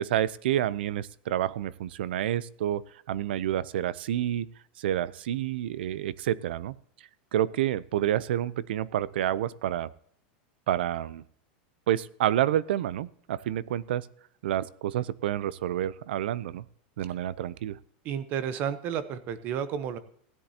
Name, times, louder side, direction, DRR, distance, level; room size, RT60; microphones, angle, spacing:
voice 1, 0.0-4.5 4.8-6.7 7.3-9.9 10.7-11.2 11.9-14.1 14.4-16.6 17.0-17.8, right 11 dB, 85° right, 20 dB, 0.5 m, -29 dB
voice 2, 18.0-20.0, right 8 dB, 35° right, 13 dB, 0.8 m, -31 dB
16.0 x 10.5 x 2.8 m, 0.62 s
supercardioid pair, 170°, 5 cm